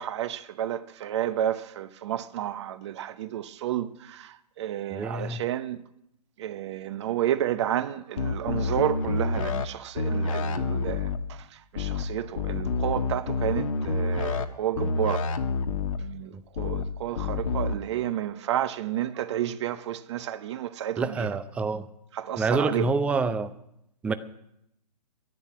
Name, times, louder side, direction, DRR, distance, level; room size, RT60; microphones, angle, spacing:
voice 1, 0.0-5.8 6.4-15.3 16.0-21.4 22.1-22.9, right 11 dB, 45° right, 0.9 m, -31 dB
voice 2, 4.9-5.4 21.0-21.8 22.4-23.5 24.0-24.1, right 3 dB, 5° right, 0.5 m, -27 dB
sound 1, 8.2-9.7 10.0-11.2 11.8-12.0 12.4-14.5 14.8-16.0 16.6-16.8 17.2-17.7, left 4 dB, 55° left, 1.3 m, -28 dB
11.0 x 11.0 x 9.5 m
hypercardioid pair, 135°, 21 cm